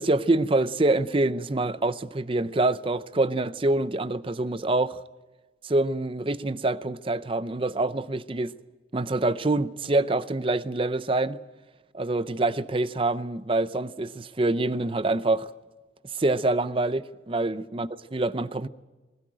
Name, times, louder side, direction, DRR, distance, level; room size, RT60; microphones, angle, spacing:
voice 1, 0.0-5.0 5.6-8.5 8.9-11.4 11.9-15.5 16.1-18.7, right 2 dB, 30° right, 0.6 m, -26 dB
20.0 x 17.5 x 9.0 m
head